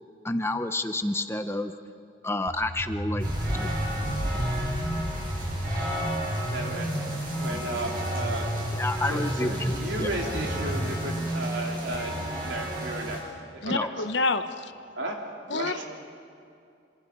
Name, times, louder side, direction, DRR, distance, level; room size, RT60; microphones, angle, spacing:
voice 1, 0.2-1.7 2.2-3.3 3.5-3.7 8.8-9.7 10.0-10.1 13.7-13.9, left 2 dB, 15° left, 8 dB, 0.7 m, -29 dB
sound 1, 2.5-12.6, equal, 30° left, 2.5 m, -32 dB
sound 2, 3.2-13.2, equal, 45° right, 7.5 m, -33 dB
voice 2, 6.5-6.9 7.3-8.5 9.1-13.2 13.5-13.9 14.9-15.2 15.5-15.9, right 1 dB, 75° right, 0 dB, 3.6 m, -34 dB
voice 3, 13.6-14.7 15.5-15.9, left 3 dB, 70° left, 10 dB, 1.0 m, -28 dB
27.0 x 26.0 x 5.4 m, 2.5 s
head